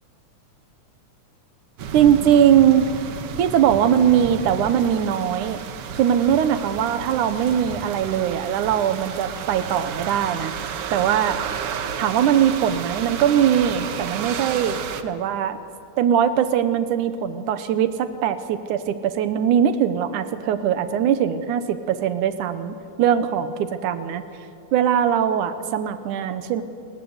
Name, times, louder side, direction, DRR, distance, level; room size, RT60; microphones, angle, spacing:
sound 1, 1.8-15.0, right 7 dB, 60° right, 1.8 m, -32 dB
voice 1, 1.9-2.9 3.4-5.6 5.9-10.5 10.9-11.4 12.0-15.6 16.0-24.2 24.7-26.6, right 9 dB, 80° right, 11 dB, 2.5 m, -21 dB
26.0 x 21.0 x 8.1 m, 2.6 s
omnidirectional pair, 3.6 m